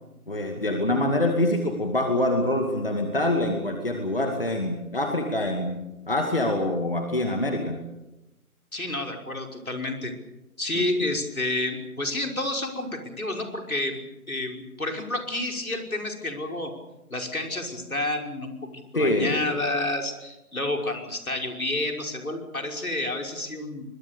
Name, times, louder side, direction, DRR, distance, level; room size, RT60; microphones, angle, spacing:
voice 1, 0.3-5.8 6.1-7.8 18.9-19.4, left 1 dB, 35° left, 3 dB, 2.4 m, -25 dB
voice 2, 8.7-10.1 10.6-14.0 14.3-16.7 17.1-23.8, left 2 dB, 65° left, 3 dB, 5.7 m, -30 dB
26.0 x 22.0 x 6.9 m, 0.96 s
figure-of-eight pair, 175°, 45 cm